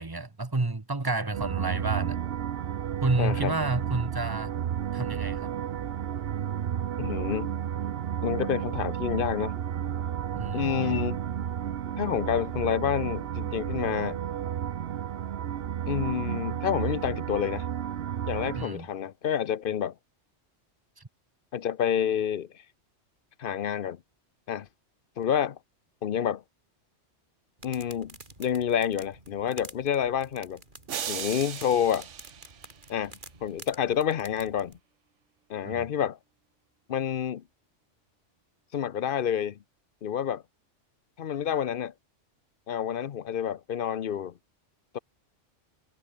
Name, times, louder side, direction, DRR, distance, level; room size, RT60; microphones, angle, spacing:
voice 1, 0.0-2.2 3.0-4.5 4.9-5.5 10.3-10.7 18.5-18.9 21.0-21.1 35.6-35.9, right 3 dB, 20° right, 1.2 m, -30 dB
sound 1, 1.3-18.7, right 9 dB, 60° right, 0.9 m, -32 dB
voice 2, 3.2-3.5 7.0-7.5 8.2-9.5 10.5-11.2 12.0-14.2 15.9-17.7 18.2-19.9 21.5-22.5 23.4-24.0 24.5-24.7 25.2-25.6 26.0-26.4 27.6-30.6 31.1-32.1 32.9-34.8 35.5-36.2 36.9-37.4 38.7-39.6 40.0-40.4 41.2-41.9 42.7-44.3 44.9-45.0, left 9 dB, 55° left, 0.8 m, -28 dB
sound 2, 27.6-34.8, right 2 dB, 40° right, 4.1 m, -49 dB
sound 3, 30.9-33.2, right 9 dB, 75° right, 1.3 m, -37 dB
omnidirectional pair, 1.2 m